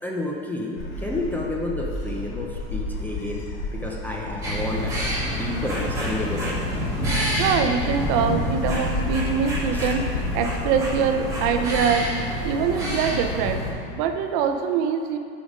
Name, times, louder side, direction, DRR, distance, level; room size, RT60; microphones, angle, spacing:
voice 1, 0.0-3.5 3.7-5.0 5.4-6.6 9.7-9.9, left 1 dB, 5° left, -2 dB, 0.4 m, -30 dB
Gull seagull, 0.8-12.0, left 2 dB, 60° left, 1.6 m, -33 dB
sound 1, 4.4-13.7, equal, 10° right, 2.2 m, -27 dB
voice 2, 7.3-12.1 12.4-13.7 13.9-15.2, right 7 dB, 45° right, 7 dB, 0.6 m, -24 dB
9.7 x 5.1 x 5.3 m, 2.5 s
supercardioid pair, 145°, 31 cm